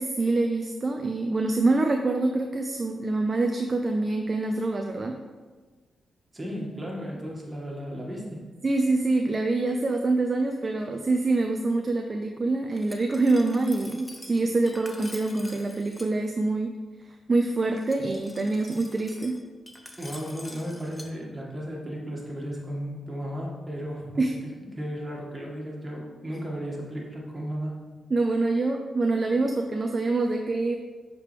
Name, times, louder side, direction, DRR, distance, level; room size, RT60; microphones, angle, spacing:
voice 1, 0.0-5.2 8.6-16.8 17.3-19.4 24.2-24.3 28.1-30.8, right 2 dB, 40° right, 4 dB, 0.5 m, -25 dB
voice 2, 6.3-8.4 20.0-24.3 24.8-27.8, equal, 25° right, -3 dB, 1.9 m, -34 dB
Glass, 12.7-16.1 17.8-21.1, left 1 dB, 10° left, 0.8 m, -46 dB
6.6 x 4.9 x 3.4 m, 1.3 s
cardioid pair, 60°, 0 cm